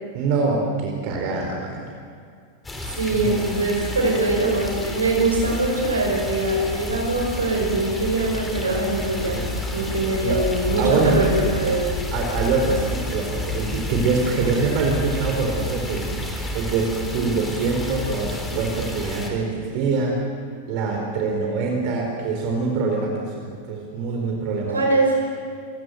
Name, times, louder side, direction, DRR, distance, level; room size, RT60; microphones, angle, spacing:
voice 1, 0.1-1.9 3.1-3.5 10.2-10.5 10.8-11.2 12.1-20.2 20.6-24.8, right 4 dB, 45° right, 1 dB, 4.1 m, -24 dB
sound 1, 2.6-19.3, left 1 dB, 10° left, 3.8 m, -30 dB
voice 2, 2.9-11.9 24.7-25.2, right 2 dB, 75° right, 1 dB, 5.5 m, -22 dB
28.0 x 17.0 x 8.0 m, 2.1 s
figure-of-eight pair, 90°, 0 cm